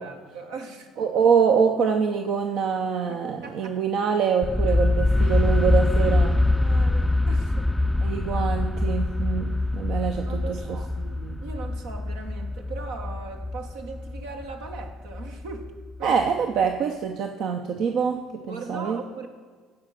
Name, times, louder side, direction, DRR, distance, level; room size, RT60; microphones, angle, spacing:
voice 1, 0.0-0.9 3.4-3.8 4.7-4.8 5.2-5.4 5.9-7.7 10.2-10.9 11.4-15.7 16.0-16.2 16.6-16.7 18.4-19.3, right 4 dB, 80° right, 3 dB, 1.3 m, -39 dB
voice 2, 1.0-6.4 8.0-10.6 11.0-11.4 16.0-19.0, right 6 dB, 65° right, 4 dB, 0.7 m, -25 dB
sound 1, 4.4-16.2, left 2 dB, 5° left, 0.4 m, -24 dB
15.0 x 5.1 x 5.8 m, 1.6 s
hypercardioid pair, 65°, 0 cm